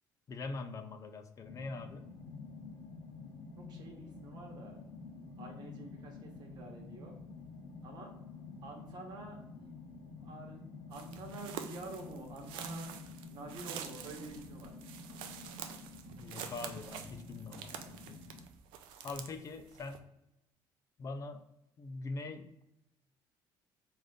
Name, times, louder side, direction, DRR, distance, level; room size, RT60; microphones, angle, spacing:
voice 1, 0.3-2.1 16.2-18.2 19.0-20.0 21.0-21.4 21.8-22.6, left 3 dB, 40° left, 7 dB, 0.4 m, -43 dB
sound 1, 1.4-18.4, left 4 dB, 75° left, 0.7 m, -50 dB
voice 2, 3.6-4.8 5.4-7.2 7.8-8.1 8.6-9.8 10.2-12.9 13.3-14.8, right 2 dB, 55° right, 1 dB, 1.1 m, -48 dB
sound 2, 10.9-20.0, right 8 dB, 85° right, 0.4 m, -47 dB
3.6 x 2.5 x 3.5 m, 0.86 s
cardioid pair, 110°, 8 cm